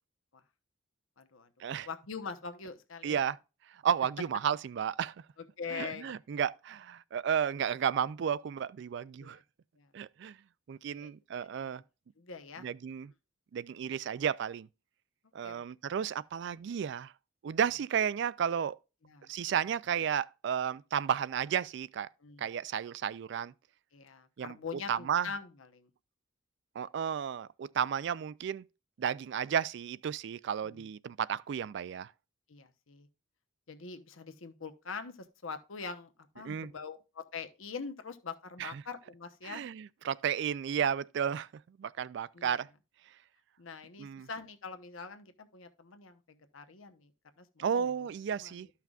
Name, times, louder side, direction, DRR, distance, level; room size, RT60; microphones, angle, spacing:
voice 1, 1.2-1.5 1.8-3.3 5.4-6.4 9.2-9.4 9.8-9.9 10.9-11.1 11.6-11.7 12.2-12.7 15.4-15.6 19.0-19.3 22.2-22.5 23.9-25.9 30.6-30.9 32.5-33.1 33.7-39.6 42.3-42.6 43.6-47.1 47.4-48.7, left 5 dB, 80° left, 0.9 m, -44 dB
voice 2, 3.0-3.4 3.8-5.1 5.7-9.4 9.9-10.4 10.7-11.8 12.6-13.1 13.5-14.7 15.3-17.1 17.4-18.8 19.3-22.1 22.4-23.5 24.4-24.6 24.9-25.3 26.8-28.6 29.0-32.1 36.4-36.7 38.6-38.7 39.4-41.5 41.8-42.7 44.0-44.3 47.6-48.7, right 8 dB, 60° right, 0.3 m, -33 dB
13.5 x 5.8 x 2.4 m
head